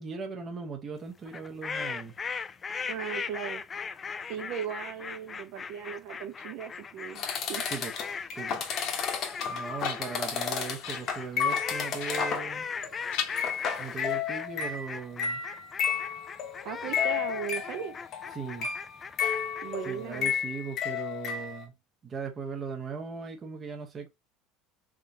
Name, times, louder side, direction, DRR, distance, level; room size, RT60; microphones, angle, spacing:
voice 1, 0.0-2.1 7.7-7.9 8.3-8.6 9.5-12.7 13.8-15.4 18.3-18.7 19.8-21.7 22.0-24.1, right 5 dB, 25° right, 0.8 m, -38 dB
sound 1, 1.3-20.4, left 5 dB, 25° left, 0.3 m, -38 dB
voice 2, 2.9-3.6 4.3-7.2 7.5-7.6 16.6-17.9 19.6-20.3, right 8 dB, 65° right, 0.9 m, -37 dB
sound 2, 7.2-12.5 12.8-13.1 13.4-21.6, left 7 dB, 45° left, 1.0 m, -32 dB
sound 3, 8.2-9.2 9.6-10.4 10.8-11.2 12.0-12.8 13.1-14.1, left 9 dB, 70° left, 0.9 m, -40 dB
3.9 x 3.6 x 2.7 m
cardioid pair, 135°, 0 cm